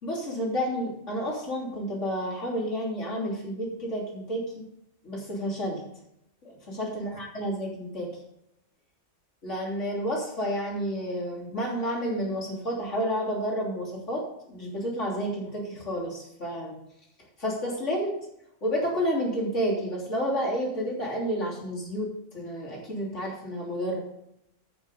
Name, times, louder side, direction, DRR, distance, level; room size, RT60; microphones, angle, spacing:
voice 1, 0.0-4.7 5.0-5.9 6.4-8.1 9.4-16.8 17.4-18.2 18.6-24.0, equal, 75° left, -3 dB, 3.6 m, -30 dB
13.0 x 6.3 x 5.3 m, 0.81 s
omnidirectional pair, 1.3 m